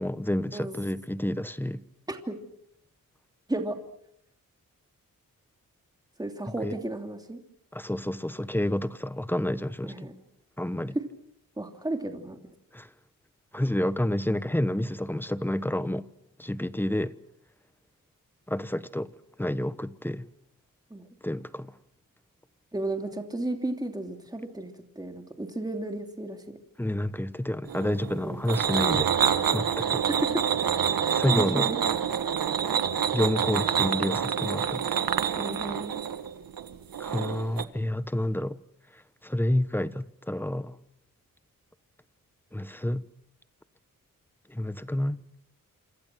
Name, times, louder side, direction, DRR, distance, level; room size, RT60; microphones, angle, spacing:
voice 1, 0.0-1.8 6.5-6.8 7.7-10.1 10.6-11.0 12.7-12.9 13.5-16.1 16.4-17.1 18.5-19.1 19.4-20.3 21.2-21.8 26.8-29.1 29.5-30.1 31.1-31.7 33.1-35.0 37.0-38.6 38.9-40.8 42.5-43.0 44.5-45.2, left 1 dB, 5° left, 1.0 m, -29 dB
voice 2, 2.1-2.4 3.5-3.8 6.2-7.4 9.8-10.1 11.6-12.4 20.9-21.0 22.7-26.6 28.2-28.4 30.1-30.4 30.9-31.8 35.4-35.9, right 2 dB, 10° right, 2.9 m, -33 dB
sound 1, 27.7-37.6, right 8 dB, 90° right, 1.7 m, -27 dB
28.0 x 27.5 x 6.2 m
wide cardioid pair, 110°, 34 cm